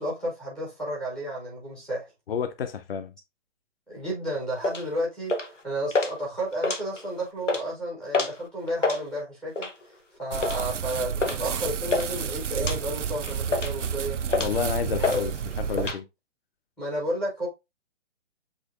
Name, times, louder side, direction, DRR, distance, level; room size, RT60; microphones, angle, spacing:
voice 1, 0.0-2.1 3.9-5.3 5.6-9.7 10.2-14.2 14.8-15.3 16.8-17.5, right 1 dB, ahead, 0.5 m, -32 dB
voice 2, 2.3-3.1 14.4-16.0, left 7 dB, 55° left, 0.8 m, -30 dB
sound 1, 4.6-4.8 5.3-5.6 5.9-6.1 6.5-7.1 7.4-7.6 8.1-8.4 8.7-9.0 9.6-9.8 10.4-10.6 11.2-11.4 11.6-12.1 12.6-12.8 13.2-13.8 14.3-14.6 15.0-15.2 15.5-16.0, left 3 dB, 90° left, 0.9 m, -27 dB
sound 2, 10.3-15.9, right 7 dB, 85° right, 0.5 m, -31 dB
7.6 x 2.9 x 2.4 m
figure-of-eight pair, 130°, 36 cm